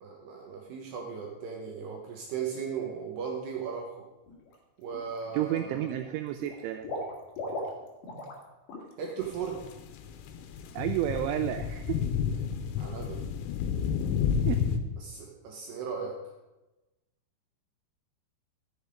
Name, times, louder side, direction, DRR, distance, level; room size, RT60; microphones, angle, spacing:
voice 1, 0.0-4.0 4.8-5.9 9.0-9.6 12.8-13.2 15.0-16.2, right 6 dB, 70° right, -1 dB, 2.7 m, -37 dB
Water / Liquid, 4.3-4.6 4.9-5.6 5.9-8.4 8.7-8.9 9.3-9.4, left 1 dB, 60° left, 2.4 m, -38 dB
voice 2, 5.3-6.9 10.7-12.0 14.5-14.7, right 13 dB, 90° right, 8 dB, 2.7 m, -31 dB
sound 1, 9.2-14.8, left 7 dB, 90° left, 3.5 m, -31 dB
13.0 x 7.2 x 5.1 m, 1.0 s
omnidirectional pair, 5.9 m